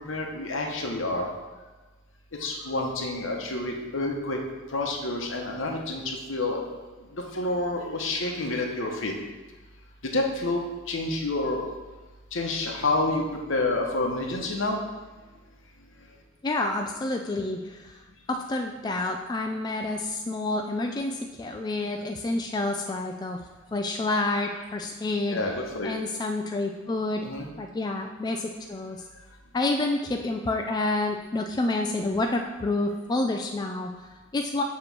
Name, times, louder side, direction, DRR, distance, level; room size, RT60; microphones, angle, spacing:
voice 1, 0.1-1.3 2.3-4.4 4.7-6.7 7.1-9.1 10.0-11.7 12.3-14.8 25.3-26.0 27.2-27.5, left 2 dB, 65° left, 1 dB, 1.0 m, -29 dB
voice 2, 16.4-18.0 18.3-23.4 23.7-25.4 25.8-27.3 27.6-29.0 29.5-34.6, left 2 dB, 20° left, 3 dB, 0.3 m, -29 dB
7.6 x 3.1 x 5.9 m, 1.3 s
head